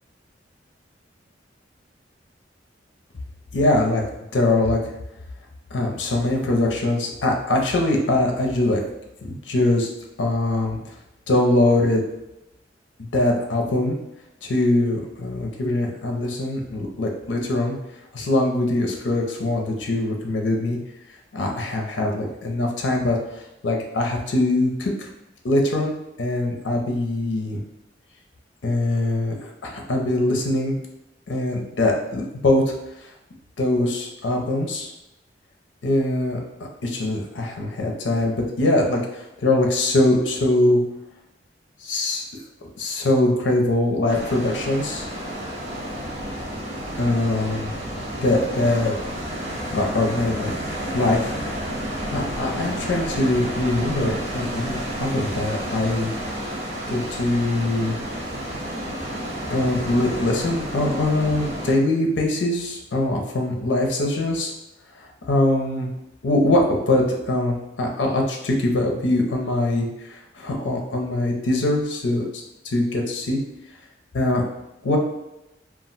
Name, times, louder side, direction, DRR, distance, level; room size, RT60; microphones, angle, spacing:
voice 1, 3.5-4.0 4.3-4.8 5.7-8.8 9.2-9.9 10.2-10.8 11.3-12.0 13.0-14.0 14.4-17.7 18.1-20.8 21.3-25.1 25.4-27.6 28.6-30.8 31.3-32.6 33.6-34.9 35.8-36.4 36.8-40.8 41.8-42.3 42.8-45.1 47.0-47.7 48.2-48.9 49.7-50.5 50.9-51.4 52.1-56.1 56.9-58.0 59.5-64.5 65.0-65.9 66.2-72.3 72.6-73.4 74.1-74.4 74.8-75.0, left 2 dB, 80° left, 1 dB, 0.5 m, -22 dB
sound 1, 44.1-61.7, equal, 35° right, 0.6 m, -31 dB
2.3 x 2.1 x 3.8 m, 0.91 s
head